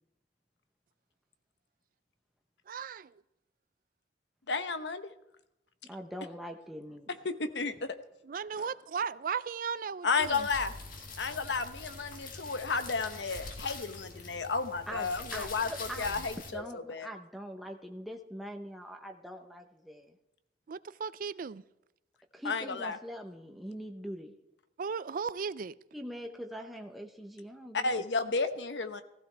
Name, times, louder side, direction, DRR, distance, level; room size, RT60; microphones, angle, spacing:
voice 1, 2.7-3.1 8.3-10.5 20.7-21.6 24.8-25.7, right 6 dB, 50° right, 0.4 m, -36 dB
voice 2, 4.5-5.1 7.2-7.9 10.0-10.7 11.2-15.7 16.0-17.1 22.4-23.0 27.7-29.0, left 4 dB, 80° left, 0.9 m, -32 dB
voice 3, 5.9-7.3 8.6-8.7 11.2-11.5 14.9-16.3 16.5-20.1 22.3-24.3 25.9-28.4, equal, ahead, 0.9 m, -43 dB
sound 1, 10.2-16.5, left 3 dB, 50° left, 1.8 m, -44 dB
15.5 x 15.0 x 3.4 m
head